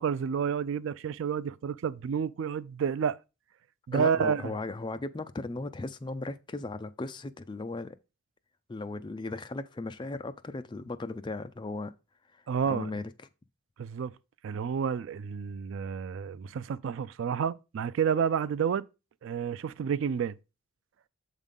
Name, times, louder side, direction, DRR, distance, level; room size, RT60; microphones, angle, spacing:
voice 1, 0.0-3.2 3.9-4.5 12.5-12.9 13.8-14.1 14.4-18.8 19.2-20.3, right 7 dB, 60° right, 0.3 m, -30 dB
voice 2, 3.9-8.0 8.7-11.9 12.3-13.1, left 2 dB, 20° left, 0.4 m, -37 dB
7.3 x 3.6 x 5.3 m
head